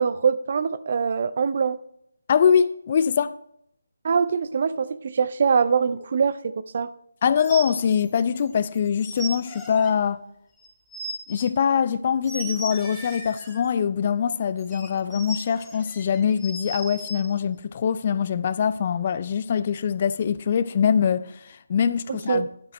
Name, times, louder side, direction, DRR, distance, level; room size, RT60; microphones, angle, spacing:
voice 1, 0.0-1.8 4.0-6.9 22.1-22.5, right 6 dB, 45° right, 0.5 m, -23 dB
voice 2, 2.3-3.3 7.2-10.2 11.3-22.5, left 7 dB, 35° left, 0.4 m, -23 dB
sound 1, 7.4-8.5 8.8-9.9 10.6-11.5 12.2-13.7 14.6-17.2, right 1 dB, 5° left, 2.0 m, -36 dB
12.0 x 11.0 x 3.1 m
figure-of-eight pair, 150°, 0 cm